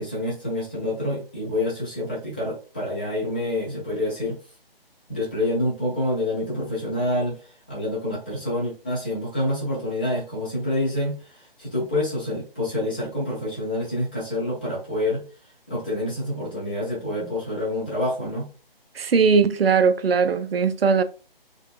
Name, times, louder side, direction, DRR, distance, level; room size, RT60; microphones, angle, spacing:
voice 1, 0.0-4.4 5.1-15.3 15.7-18.5, left 1 dB, 10° left, 0.5 m, -27 dB
voice 2, 19.0-21.0, right 5 dB, 75° right, 0.5 m, -19 dB
3.8 x 2.4 x 2.4 m
figure-of-eight pair, 150°, 30 cm